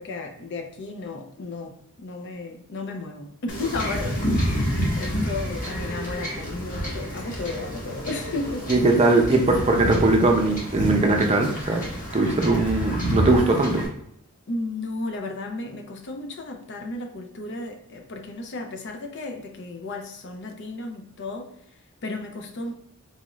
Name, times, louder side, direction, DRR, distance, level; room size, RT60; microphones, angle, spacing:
voice 1, 0.0-8.7 9.1-9.2 14.5-21.5 22.0-22.7, left 3 dB, 55° left, 0.5 m, -34 dB
Wind / Ocean / Boat Water vehicle, 3.5-13.8, equal, 40° left, 1.2 m, -29 dB
voice 2, 8.7-11.8 12.1-13.8, right 2 dB, 30° right, 0.5 m, -20 dB
4.1 x 2.4 x 3.0 m
head